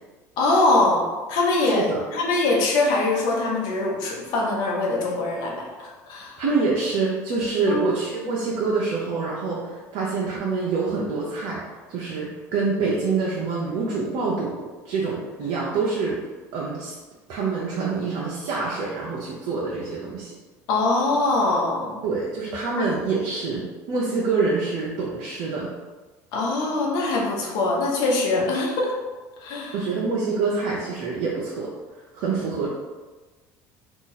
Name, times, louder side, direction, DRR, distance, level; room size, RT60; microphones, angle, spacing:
voice 1, 0.4-1.0 1.3-6.4 7.7-7.9 20.7-22.0 22.8-22.9 26.3-28.9 29.4-29.8, left 2 dB, 70° left, -2 dB, 1.0 m, -23 dB
voice 2, 1.6-2.0 6.4-11.6 11.9-16.2 16.5-16.9 17.3-20.3 22.0-25.7 28.3-28.5 29.7-31.7 32.1-32.7, right 4 dB, 65° right, -5 dB, 0.7 m, -26 dB
3.0 x 2.5 x 3.9 m, 1.3 s
supercardioid pair, 80°, 8 cm